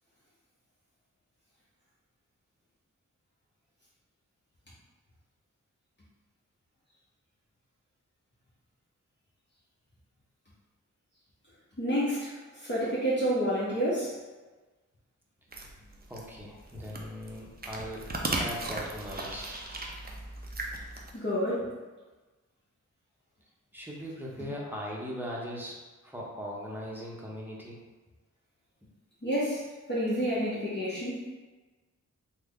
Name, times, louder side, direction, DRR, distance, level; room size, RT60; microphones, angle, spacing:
voice 1, 11.8-14.1 21.1-21.7 29.2-31.2, equal, 35° left, -9 dB, 1.0 m, -29 dB
sound 1, 15.5-21.1, right 2 dB, 30° right, 0.5 m, -37 dB
voice 2, 16.1-19.6 23.7-27.8, equal, 5° right, -4 dB, 0.8 m, -39 dB
3.4 x 2.2 x 3.7 m, 1.2 s
wide cardioid pair, 65°, 31 cm